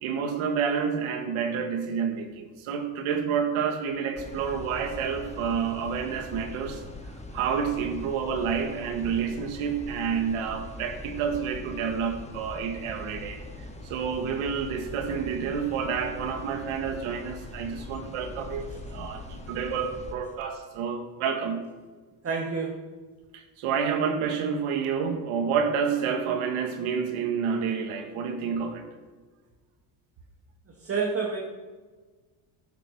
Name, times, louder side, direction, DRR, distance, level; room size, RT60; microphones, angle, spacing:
voice 1, 0.0-6.8 7.3-13.4 13.9-21.6 23.3-28.9, right 6 dB, 75° right, 6 dB, 2.1 m, -29 dB
sound 1, 4.2-20.1, left 2 dB, 15° left, 1.7 m, -42 dB
voice 2, 22.2-22.9 30.7-31.4, right 5 dB, 25° right, 0 dB, 1.7 m, -29 dB
12.0 x 9.7 x 6.3 m, 1.4 s
cardioid pair, 110°, 50 cm